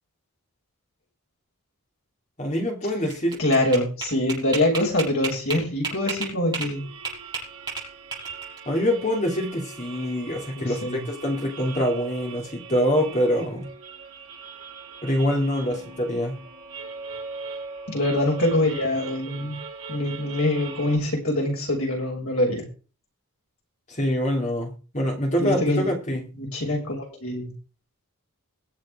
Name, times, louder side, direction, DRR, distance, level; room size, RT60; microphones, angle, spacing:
voice 1, 2.4-3.4 8.7-13.7 15.0-16.4 23.9-26.3, equal, 35° left, 3.1 m, -25 dB
sound 1, 2.9-6.7 7.0-8.6, right 4 dB, 20° right, 6.8 m, -31 dB
voice 2, 3.4-6.8 10.5-11.0 17.9-19.6 19.9-22.6 25.4-25.8 26.1-27.5, left 1 dB, 70° left, 6.7 m, -24 dB
sound 2, 6.6-21.0, right 4 dB, 70° right, 7.0 m, -40 dB
22.5 x 7.6 x 3.8 m
head